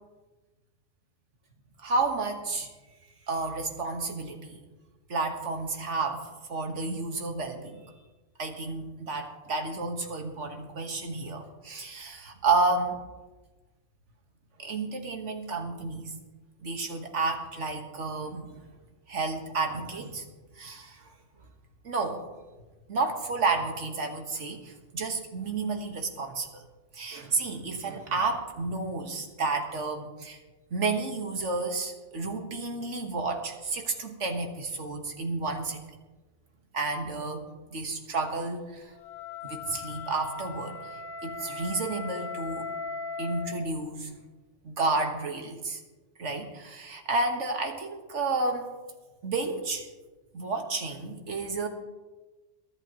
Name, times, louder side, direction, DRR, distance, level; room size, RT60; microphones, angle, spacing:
voice 1, 1.8-2.7 3.3-4.6 5.1-7.9 8.4-13.0 14.6-16.1 16.6-18.6 19.1-20.2 20.6-21.1 21.8-22.2 22.9-26.6 26.9-30.4 30.7-35.8 36.7-38.9 39.4-42.7 43.2-44.1 44.6-45.8 46.2-48.7 49.2-49.9 50.3-51.7, right 3 dB, 80° right, 4 dB, 1.8 m, -31 dB
Wind instrument woodwind instrument, 38.9-43.6, left 4 dB, 70° left, 1.8 m, -38 dB
23.0 x 11.0 x 3.0 m, 1.2 s
omnidirectional pair, 1.2 m